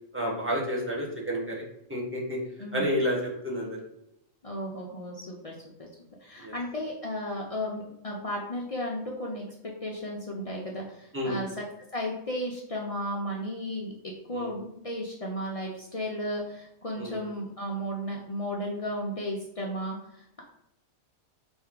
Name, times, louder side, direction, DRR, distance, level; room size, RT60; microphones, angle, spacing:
voice 1, 0.1-1.6 1.9-2.4 2.7-3.8 6.4-6.5 11.1-11.4 14.3-14.5 17.0-17.2, equal, 10° right, -4 dB, 0.8 m, -30 dB
voice 2, 2.6-2.9 4.4-5.9 6.2-9.5 9.8-11.6 11.9-13.9 14.3-20.4, equal, 70° left, -2 dB, 0.3 m, -34 dB
4.3 x 2.6 x 3.7 m, 0.81 s
omnidirectional pair, 1.4 m